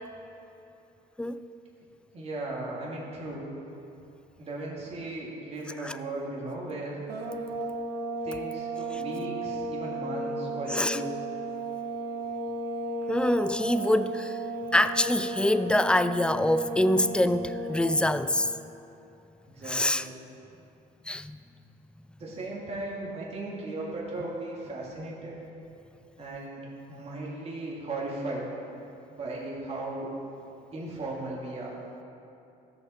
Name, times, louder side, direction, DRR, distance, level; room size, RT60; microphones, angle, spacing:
voice 1, 2.1-3.5 4.4-7.0 8.2-11.3 13.6-13.7 19.4-20.2 22.2-25.4 26.2-26.6 26.9-28.5 29.1-30.1 30.7-31.8, right 2 dB, 35° right, 2.4 m, -36 dB
sound 1, 7.1-18.1, right 2 dB, 70° right, 1.1 m, -34 dB
voice 2, 13.1-14.3 14.7-18.5 19.7-20.0 21.1-21.4, left 1 dB, 5° left, 0.3 m, -25 dB
15.0 x 6.7 x 4.4 m
cardioid pair, 110°, 17 cm